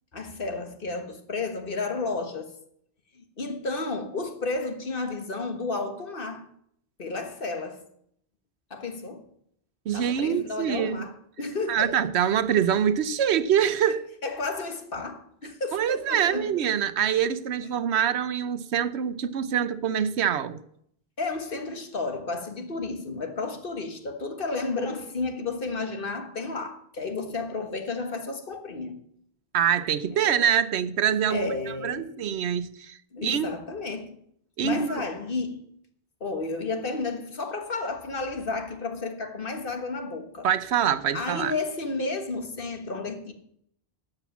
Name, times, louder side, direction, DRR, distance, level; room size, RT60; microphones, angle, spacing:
voice 1, 0.1-2.5 3.1-6.5 7.0-7.8 8.7-9.3 9.9-11.9 14.2-16.6 21.2-29.0 30.1-30.4 31.3-32.1 33.1-34.2 34.6-35.6 36.2-40.5 41.1-43.3, left 3 dB, 55° left, 1.6 m, -32 dB
voice 2, 9.9-11.1 11.7-14.0 15.7-20.6 29.5-31.5 31.8-33.5 34.6-35.0 40.4-41.5, right 9 dB, 85° right, 1.0 m, -25 dB
13.0 x 8.0 x 7.2 m
omnidirectional pair, 1.1 m